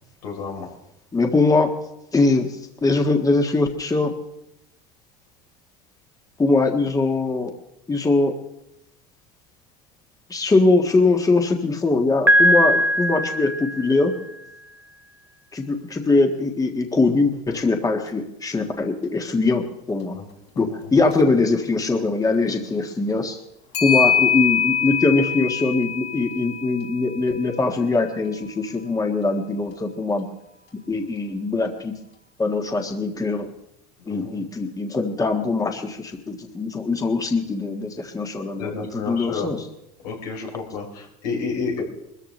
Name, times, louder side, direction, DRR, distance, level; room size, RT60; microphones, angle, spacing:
voice 1, 0.2-0.7 20.1-20.3 20.5-20.8 34.1-34.4 38.6-39.5 40.0-41.8, left 5 dB, 85° left, -1 dB, 3.8 m, -30 dB
voice 2, 1.1-1.7 2.1-2.5 2.8-4.1 6.4-7.5 7.9-8.3 10.3-14.1 15.5-20.1 20.6-23.4 23.8-30.3 30.9-31.9 32.4-33.5 34.1-39.6, left 3 dB, 15° left, 4 dB, 1.6 m, -22 dB
Piano, 12.3-14.2, equal, 10° right, 1.0 m, -19 dB
Clock, 17.5-17.6 18.1-18.2 21.0-21.2 23.7-28.0, left 8 dB, 60° left, 4.1 m, -24 dB
21.5 x 14.0 x 3.2 m, 0.83 s
supercardioid pair, 95°, 20 cm